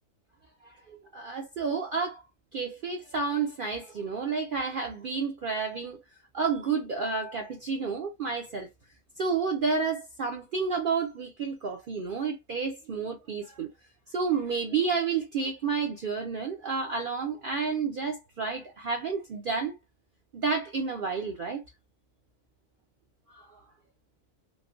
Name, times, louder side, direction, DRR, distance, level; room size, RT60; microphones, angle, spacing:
voice 1, 0.6-2.2 2.5-6.0 6.3-8.7 9.2-13.7 14.1-19.8 20.3-21.6 23.3-23.6, right 5 dB, 65° right, 0.5 m, -30 dB
3.1 x 2.1 x 2.4 m
omnidirectional pair, 1.4 m